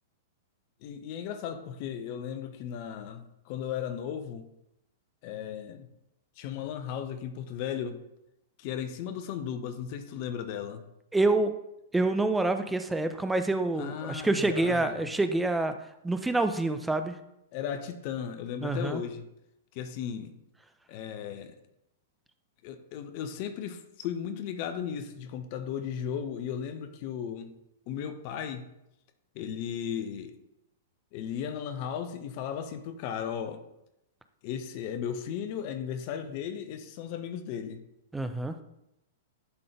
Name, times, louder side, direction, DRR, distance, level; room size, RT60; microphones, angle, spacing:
voice 1, 0.8-4.5 5.2-5.9 6.4-8.0 8.6-10.8 13.8-15.1 17.5-19.3 19.7-20.3 20.9-21.5 22.6-27.5 27.9-28.7 29.3-30.3 31.1-33.6 34.4-37.8, left 8 dB, 45° left, 9 dB, 0.7 m, -36 dB
voice 2, 11.1-11.5 11.9-15.7 16.0-17.2 18.6-19.0 38.1-38.5, right 2 dB, 5° right, 8 dB, 0.5 m, -27 dB
11.0 x 3.8 x 3.4 m, 0.85 s
figure-of-eight pair, 105°, 0 cm